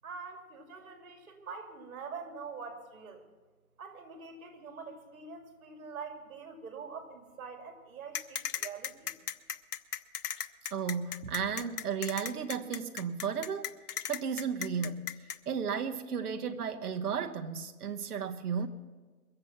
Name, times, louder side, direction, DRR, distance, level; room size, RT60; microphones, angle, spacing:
voice 1, 0.0-3.2 3.8-9.1, right 5 dB, 65° right, 2.6 m, -45 dB
sound 1, 8.1-15.4, left 9 dB, 85° left, 0.8 m, -36 dB
voice 2, 10.7-13.8 14.1-15.1 15.5-18.7, right 6 dB, 80° right, 1.1 m, -34 dB
22.0 x 7.9 x 5.8 m
hypercardioid pair, 145°, 45 cm